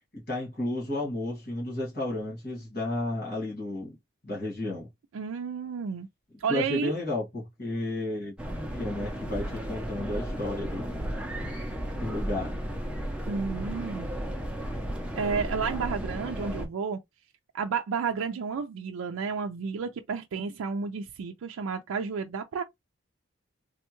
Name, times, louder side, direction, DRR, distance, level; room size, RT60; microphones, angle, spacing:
voice 1, 0.1-4.0 4.2-4.9 6.5-11.0 12.0-12.5, left 1 dB, 45° left, 1.9 m, -32 dB
voice 2, 5.1-6.1 6.4-6.9 13.3-14.1 15.2-17.0 17.5-22.6, right 5 dB, 85° right, 0.4 m, -31 dB
sound 1, 8.4-16.7, equal, 5° right, 0.5 m, -34 dB
3.5 x 2.2 x 2.9 m
head